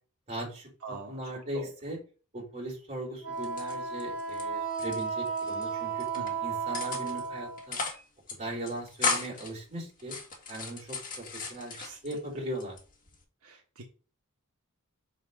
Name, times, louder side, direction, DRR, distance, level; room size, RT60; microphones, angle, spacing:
voice 1, 0.3-0.7 1.1-2.0 2.3-6.1 6.4-7.8 8.4-10.2 10.5-12.8, right 1 dB, 30° right, -2 dB, 3.2 m, -38 dB
voice 2, 0.8-1.7 6.1-6.4 11.8-12.0 13.4-13.8, right 3 dB, 70° right, 0 dB, 1.3 m, -43 dB
Wind instrument woodwind instrument, 3.2-7.7, right 5 dB, 5° right, 4.3 m, -34 dB
sound 1, 3.4-4.4 4.7-5.6 6.0-6.3 6.7-7.3 7.6-8.0 8.3-8.4 8.7-9.5 10.0-12.2 12.6-13.2, left 4 dB, 40° left, 1.8 m, -35 dB
6.4 x 4.2 x 5.2 m, 0.36 s
head